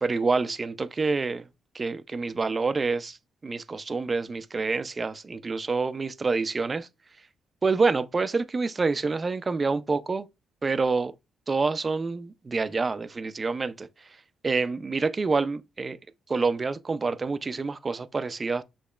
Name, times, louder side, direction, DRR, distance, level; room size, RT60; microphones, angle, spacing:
voice 1, 0.0-1.5 1.7-3.2 3.4-6.9 7.6-10.3 10.6-11.1 11.5-13.9 14.4-16.0 16.3-18.6, right 4 dB, 30° right, 0.3 m, -27 dB
6.3 x 2.9 x 2.3 m
cardioid pair, 90°, 0 cm